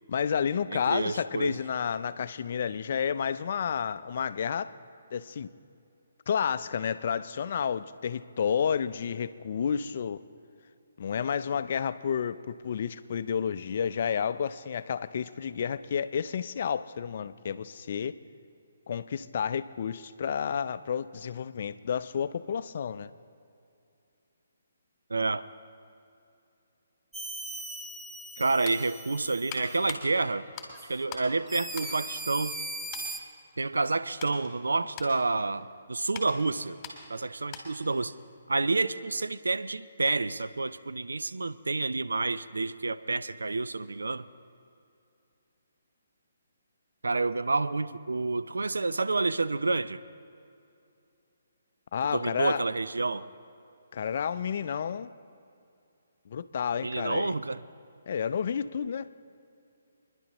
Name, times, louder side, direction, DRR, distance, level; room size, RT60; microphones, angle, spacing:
voice 1, 0.1-4.7 5.1-5.5 6.3-10.2 11.0-18.1 18.9-23.1 51.9-52.6 53.9-55.1 56.3-57.3 58.1-59.1, left 7 dB, 50° left, 13 dB, 0.5 m, -30 dB
voice 2, 0.7-1.6 25.1-25.5 28.4-30.4 30.8-32.6 33.6-36.8 37.1-38.1 38.5-44.3 47.0-50.0 52.1-53.3 56.8-57.6, right 3 dB, 90° right, 14 dB, 0.4 m, -29 dB
sound 1, 27.1-29.9 30.7-30.9 31.5-33.2, right 2 dB, 5° right, 0.5 m, -39 dB
sound 2, 28.2-31.3 31.7-32.6 32.9-33.2 33.7-37.9 38.2-38.4, left 5 dB, 25° left, 2.1 m, -44 dB
25.5 x 10.5 x 3.0 m, 2.6 s
hypercardioid pair, 150°, 0 cm